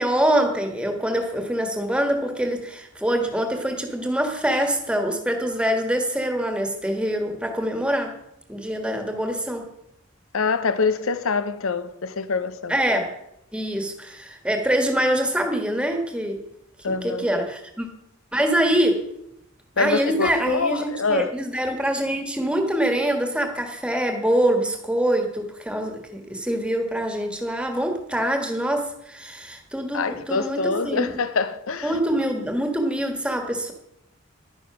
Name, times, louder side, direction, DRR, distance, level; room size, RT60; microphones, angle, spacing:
voice 1, 0.0-8.1 8.5-9.7 12.7-13.1 13.5-16.4 16.8-17.9 18.3-19.1 19.8-31.2 31.8-33.7, right 1 dB, 5° right, 1.5 m, -24 dB
voice 2, 10.3-12.7 16.8-17.3 19.8-21.3 29.9-32.0, left 4 dB, 80° left, 0.7 m, -25 dB
11.5 x 9.8 x 5.9 m
head